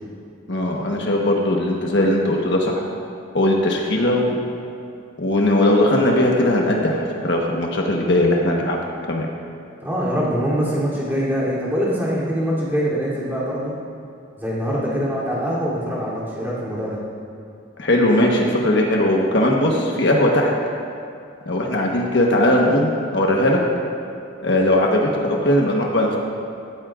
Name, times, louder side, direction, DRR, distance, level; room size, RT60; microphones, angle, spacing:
voice 1, 0.5-2.8 3.3-4.4 5.2-8.8 9.1-9.3 17.8-20.5 21.5-23.6 24.4-26.2, left 1 dB, 60° left, -1 dB, 1.2 m, -19 dB
voice 2, 9.8-13.7 14.4-17.0, equal, 10° right, -8 dB, 3.1 m, -23 dB
16.5 x 14.0 x 2.5 m, 2.4 s
head